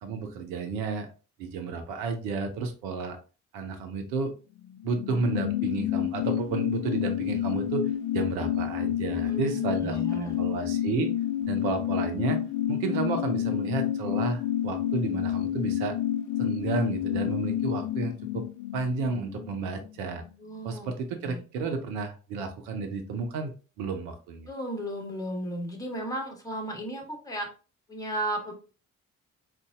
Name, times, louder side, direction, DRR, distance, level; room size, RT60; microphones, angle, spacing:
voice 1, 0.0-1.1 1.4-3.2 3.5-4.3 4.8-7.8 8.1-11.1 11.5-12.4 12.7-16.0 16.4-18.4 18.7-20.2 20.6-24.5, right 4 dB, 70° right, 6 dB, 0.8 m, -32 dB
sound 1, 4.6-19.9 20.2-20.3, left 11 dB, 55° left, 0.4 m, -29 dB
voice 2, 9.2-10.4 20.4-20.9 21.2-21.4 24.5-27.5 27.9-28.5, right 1 dB, 10° left, 2 dB, 1.5 m, -34 dB
4.0 x 2.5 x 3.6 m, 0.35 s
hypercardioid pair, 45°, 38 cm